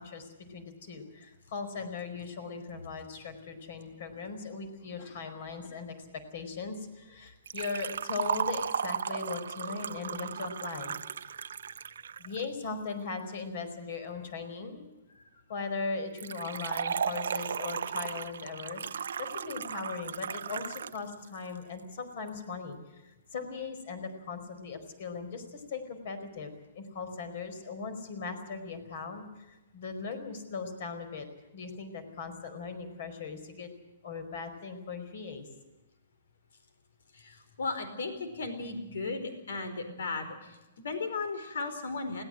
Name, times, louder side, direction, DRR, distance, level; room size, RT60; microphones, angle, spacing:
voice 1, 0.0-10.9 12.2-14.9 15.5-31.3 31.5-33.7 34.0-35.5, left 4 dB, 50° left, 10 dB, 4.7 m, -39 dB
Liquid, 7.5-12.4 16.2-21.0 21.3-21.4 22.3-22.4, right 7 dB, 85° right, 0.7 m, -35 dB
voice 2, 37.1-42.2, left 3 dB, 80° left, 9 dB, 4.6 m, -36 dB
21.5 x 17.5 x 7.8 m, 1.0 s
hypercardioid pair, 170°, 0 cm